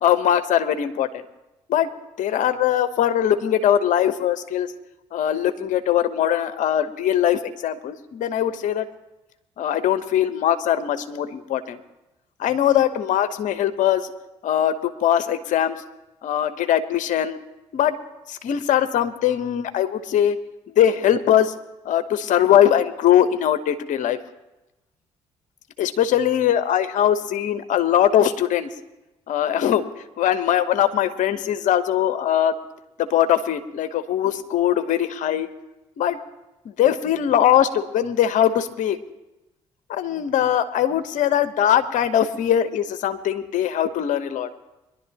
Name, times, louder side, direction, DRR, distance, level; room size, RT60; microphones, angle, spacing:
voice 1, 0.0-1.2 1.7-1.9 2.2-4.7 5.1-8.9 9.6-11.8 12.4-14.1 14.4-15.8 16.2-17.4 17.7-18.0 18.3-20.4 20.8-21.5 21.8-24.2 25.8-28.7 29.3-29.9 30.2-32.5 33.0-35.5 36.0-36.2 36.8-39.0 39.9-44.5, left 10 dB, 60° left, 10 dB, 1.0 m, -21 dB
23.5 x 11.5 x 3.0 m, 1.0 s
hypercardioid pair, 50°, 15 cm